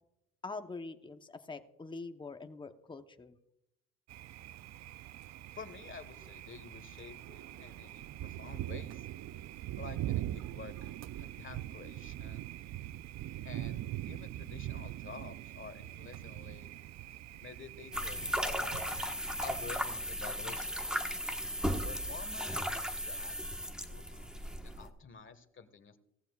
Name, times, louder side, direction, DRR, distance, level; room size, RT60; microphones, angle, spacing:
voice 1, 0.4-3.3, left 3 dB, 15° left, 7 dB, 0.8 m, -44 dB
Thunder, 4.1-19.8, right 13 dB, 60° right, 0.5 m, -42 dB
voice 2, 5.5-9.1 9.8-12.5 13.4-16.7 17.3-18.8 19.4-20.8 21.8-23.6 23.9-26.0, left 5 dB, 40° left, 10 dB, 1.5 m, -50 dB
sound 1, 17.9-24.9, equal, 5° right, 1.3 m, -36 dB
17.5 x 14.5 x 2.4 m, 0.81 s
cardioid pair, 90°, 30 cm